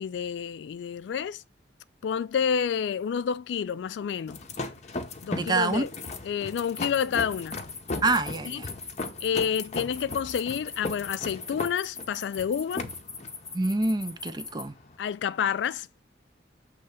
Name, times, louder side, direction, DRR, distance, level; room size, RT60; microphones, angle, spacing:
voice 1, 0.0-1.4 2.0-4.4 5.2-5.9 6.2-7.6 8.5-8.6 9.2-12.8 15.0-15.9, left 7 dB, 75° left, 0.3 m, -29 dB
sound 1, 4.3-15.0, left 3 dB, 40° left, 0.7 m, -37 dB
voice 2, 5.3-5.8 8.0-8.7 13.5-14.7, right 3 dB, 25° right, 0.5 m, -26 dB
sound 2, 6.6-14.6, left 5 dB, 15° left, 1.1 m, -40 dB
6.7 x 3.2 x 4.9 m
head